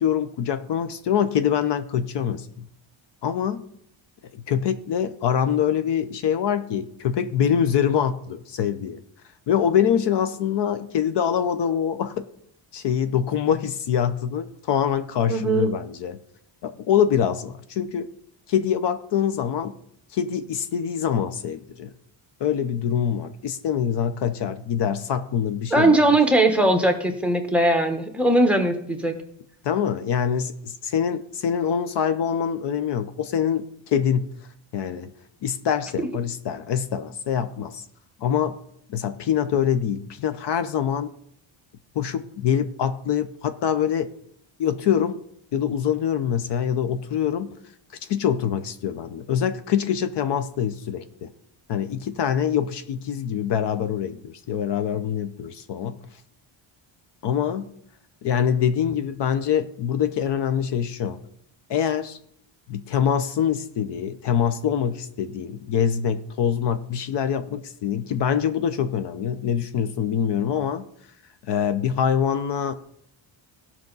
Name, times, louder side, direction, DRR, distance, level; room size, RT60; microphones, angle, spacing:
voice 1, 0.0-2.7 3.2-3.6 4.3-9.0 9.5-12.3 12.7-16.2 16.6-18.1 18.5-19.7 20.1-21.9 22.4-26.2 29.6-34.3 34.7-35.1 35.4-37.8 38.2-38.6 38.9-41.1 41.9-44.1 44.6-45.2 45.5-47.6 48.1-51.3 51.7-56.0 57.2-57.7 58.2-61.2 61.7-62.2 62.7-70.8 71.5-72.7, left 8 dB, 60° left, 11 dB, 0.7 m, -24 dB
voice 2, 15.3-15.7 25.7-29.1, right 1 dB, 5° right, 4 dB, 1.1 m, -19 dB
17.0 x 6.0 x 4.0 m, 0.68 s
cardioid pair, 155°, 47 cm